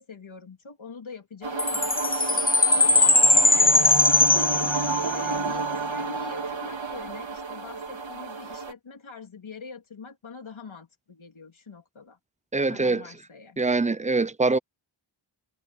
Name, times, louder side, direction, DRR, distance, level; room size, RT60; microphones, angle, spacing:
voice 1, 0.0-1.9 2.7-12.2 12.7-13.6, left 4 dB, 90° left, 3.1 m, -44 dB
sound 1, 1.4-8.7, right 4 dB, 75° right, 3.0 m, -31 dB
Chime, 1.6-5.3, left 2 dB, 20° left, 0.8 m, -20 dB
voice 2, 12.5-13.0 13.6-14.6, right 3 dB, 15° right, 0.4 m, -23 dB
wide cardioid pair, 85°, 46 cm